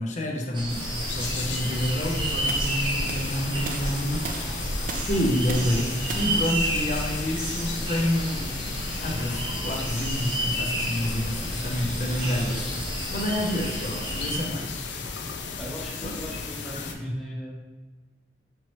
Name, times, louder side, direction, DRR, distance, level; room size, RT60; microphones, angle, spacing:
voice 1, 0.0-4.5 5.1-12.8 13.1-15.1 16.0-16.3 16.9-17.2, left 1 dB, 45° left, 0 dB, 0.6 m, -29 dB
sound 1, 0.5-14.4, right 1 dB, 30° right, 0.9 m, -31 dB
sound 2, 0.7-16.9, left 5 dB, 80° left, 0.4 m, -35 dB
sound 3, 2.5-8.6, right 4 dB, 50° right, 0.4 m, -38 dB
voice 2, 15.6-17.5, equal, ahead, -4 dB, 0.7 m, -39 dB
4.5 x 3.0 x 3.0 m, 1.3 s
head